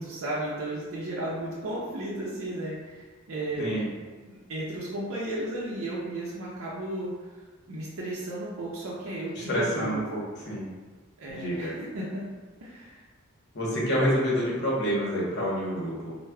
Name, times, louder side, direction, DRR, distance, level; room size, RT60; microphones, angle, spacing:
voice 1, 0.0-3.9 4.2-7.3 7.7-10.1 11.2-12.2 12.6-13.0, right 1 dB, 70° right, -6 dB, 0.6 m, -34 dB
voice 2, 9.3-10.2 10.4-10.7 11.3-11.7 13.5-16.2, equal, 55° left, -5 dB, 0.9 m, -28 dB
4.7 x 2.1 x 2.2 m, 1.3 s
head